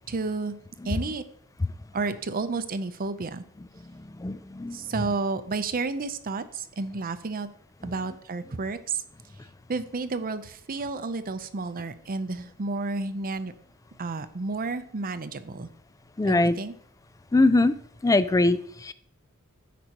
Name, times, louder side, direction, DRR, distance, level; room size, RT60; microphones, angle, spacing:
voice 1, 0.1-0.5 0.8-1.2 1.9-3.4 4.7-7.5 7.8-9.0 9.7-13.5 14.0-15.7 16.3-16.7, right 3 dB, 40° right, 11 dB, 0.6 m, -31 dB
voice 2, 4.2-4.8 16.2-16.5 17.3-17.7 18.0-18.9, left 2 dB, 15° left, 14 dB, 0.3 m, -22 dB
14.0 x 5.2 x 2.9 m, 0.62 s
head